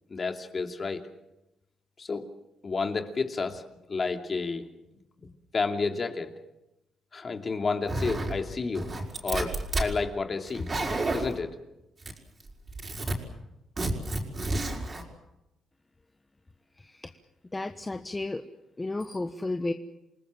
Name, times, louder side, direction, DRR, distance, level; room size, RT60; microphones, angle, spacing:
voice 1, 0.1-1.0 2.0-2.3 2.6-3.6 3.9-4.7 5.5-6.3 7.1-8.9 9.2-10.7 11.1-11.5, left 4 dB, 35° left, 5 dB, 2.7 m, -30 dB
Zipper (clothing), 7.9-8.4 8.7-9.9 10.5-11.3 12.0-12.4 12.7-13.1 13.8-15.0, right 2 dB, 35° right, 5.4 m, -30 dB
voice 2, 16.8-17.1 17.5-18.4 18.8-19.7, left 2 dB, 20° left, 7 dB, 1.3 m, -33 dB
28.5 x 19.5 x 7.6 m, 0.92 s
cardioid pair, 90°, 0 cm